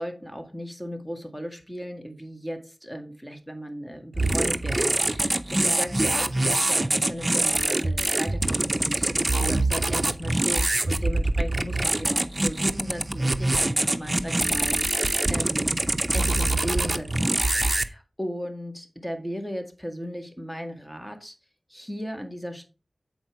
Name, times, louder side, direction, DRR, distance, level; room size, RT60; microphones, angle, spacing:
voice 1, 0.0-15.8 16.1-21.3 21.7-22.7, equal, 10° left, 1.7 m, -36 dB
sound 1, 4.1-17.9, right 2 dB, 35° right, 0.6 m, -24 dB
7.9 x 4.4 x 4.5 m
wide cardioid pair, 50°, 0 cm